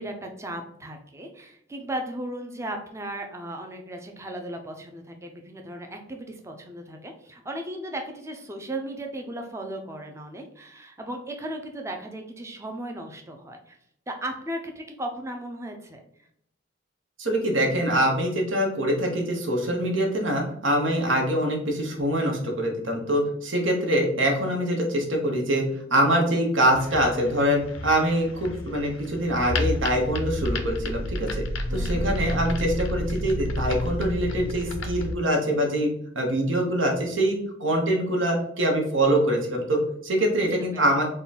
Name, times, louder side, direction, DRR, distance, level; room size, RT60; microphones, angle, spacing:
voice 1, 0.0-13.8 14.1-16.0 31.7-32.2 40.4-40.5 40.7-41.0, right 1 dB, 15° right, 3 dB, 0.5 m, -36 dB
voice 2, 17.2-25.6 25.9-31.3 31.7-41.0, right 1 dB, 80° right, 1 dB, 1.1 m, -24 dB
sound 1, 26.7-35.1, left 1 dB, 90° left, 0.6 m, -30 dB
3.8 x 2.3 x 4.0 m, 0.72 s
head